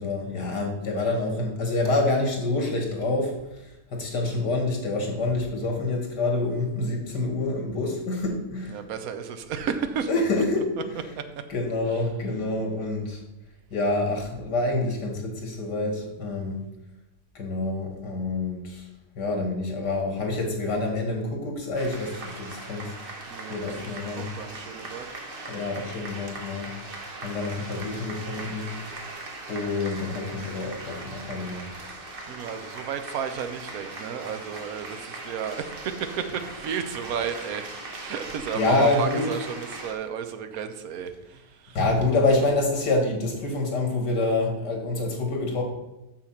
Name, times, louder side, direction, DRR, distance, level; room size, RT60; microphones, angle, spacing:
voice 1, 0.0-3.6 3.9-8.8 10.1-10.7 11.5-13.2 13.7-16.6 17.3-18.9 19.2-23.0 23.5-24.3 25.5-26.7 27.2-28.7 29.5-31.7 38.5-39.3 41.7-45.6, left 2 dB, 80° left, 2 dB, 2.6 m, -27 dB
voice 2, 8.7-10.1 10.4-10.5 11.2-11.3 23.3-25.1 32.3-37.6 38.0-41.8, right 7 dB, 65° right, 8 dB, 1.2 m, -33 dB
sound 1, 21.7-39.9, right 2 dB, 35° right, 1.4 m, -39 dB
7.3 x 6.9 x 5.8 m, 0.97 s
omnidirectional pair, 1.8 m